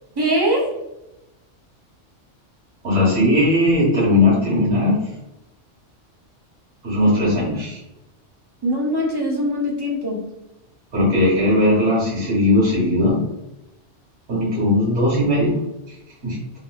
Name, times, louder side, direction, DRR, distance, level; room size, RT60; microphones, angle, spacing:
voice 1, 0.2-0.7 7.0-7.2 8.6-10.2, equal, 30° right, -1 dB, 0.5 m, -22 dB
voice 2, 2.8-5.0 6.8-7.8 10.9-13.2 14.3-15.6 15.9-16.0 16.2-16.4, left 1 dB, 75° right, -6 dB, 1.7 m, -18 dB
3.5 x 2.7 x 2.3 m, 0.92 s
omnidirectional pair, 1.3 m